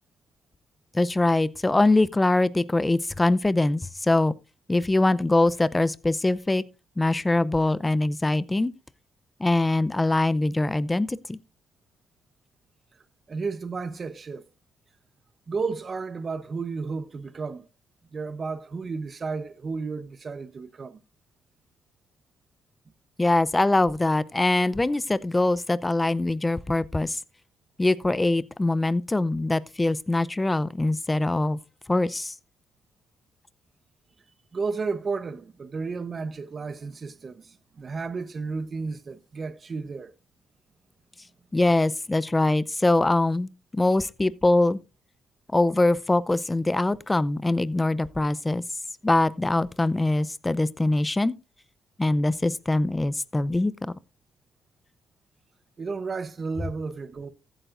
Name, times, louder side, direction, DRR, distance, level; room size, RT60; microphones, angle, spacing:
voice 1, 0.9-4.3 4.7-6.6 7.0-8.7 9.4-11.4 23.2-27.2 27.8-31.6 31.9-32.3 41.5-44.8 45.5-48.6 49.0-51.3 52.0-53.9, left 2 dB, 15° left, 0.6 m, -23 dB
voice 2, 13.3-14.5 15.5-17.6 18.1-21.0 34.5-40.1 55.8-57.3, right 4 dB, 40° right, 0.9 m, -32 dB
15.0 x 9.1 x 2.5 m
cardioid pair, 90°, 0 cm